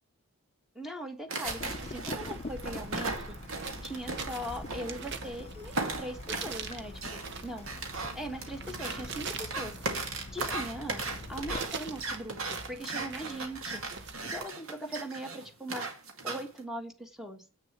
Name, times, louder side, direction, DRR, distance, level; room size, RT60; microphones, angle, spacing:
voice 1, 0.7-3.2 3.8-7.7 8.1-9.8 10.3-13.8 14.2-15.8 16.2-17.4, equal, ahead, 5 dB, 1.4 m, -40 dB
sound 1, 1.3-5.4 5.7-16.6, right 3 dB, 75° right, 2.1 m, -37 dB
Water tap faucet / Drip, 1.4-11.6, left 3 dB, 30° left, 0.5 m, -45 dB
sound 2, 1.5-14.5, right 5 dB, 55° right, 1.1 m, -44 dB
8.2 x 6.6 x 8.1 m, 0.35 s
head